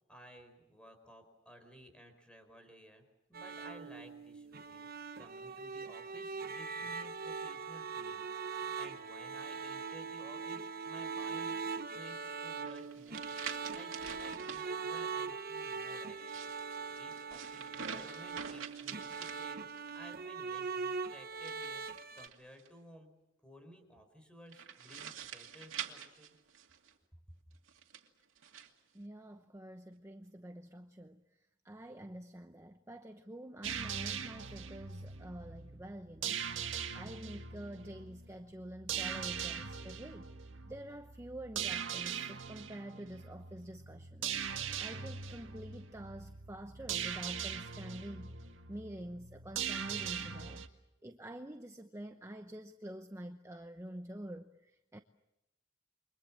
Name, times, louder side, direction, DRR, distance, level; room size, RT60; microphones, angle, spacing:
voice 1, 0.1-3.0 3.3-4.9 5.2-13.3 13.7-16.5 17.0-19.7 19.9-21.8 22.1-23.1 23.4-26.3, equal, 5° left, 4.6 m, -56 dB
sound 1, 3.3-22.3, right 5 dB, 50° right, 1.0 m, -41 dB
sound 2, 12.6-14.7 16.1-20.0 21.4-22.7 24.5-26.9 27.7-28.7, right 7 dB, 90° right, 2.4 m, -46 dB
voice 2, 28.9-31.2 31.6-36.4 36.7-40.3 40.7-48.3 48.7-50.7 51.0-55.0, right 1 dB, 15° right, 0.9 m, -47 dB
sound 3, 33.6-50.7, right 7 dB, 75° right, 1.8 m, -41 dB
28.5 x 24.0 x 7.4 m
head